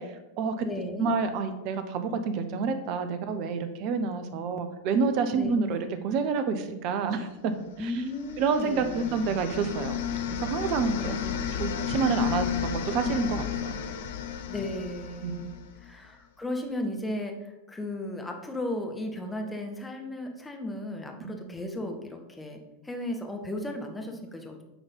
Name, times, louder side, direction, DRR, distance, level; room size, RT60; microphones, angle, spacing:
voice 1, 0.0-0.7 1.0-7.5 7.8-7.9 8.4-11.2 11.6-13.7 15.2-15.5 21.2-21.4, right 5 dB, 40° right, 9 dB, 0.8 m, -28 dB
voice 2, 0.6-1.1 5.3-5.8 7.8-9.4 11.0-11.5 14.5-24.6, left 1 dB, 10° left, 2 dB, 1.2 m, -35 dB
sound 1, 7.9-15.9, left 9 dB, 55° left, 0.7 m, -32 dB
9.1 x 4.0 x 5.4 m, 0.97 s
figure-of-eight pair, 90°, 0 cm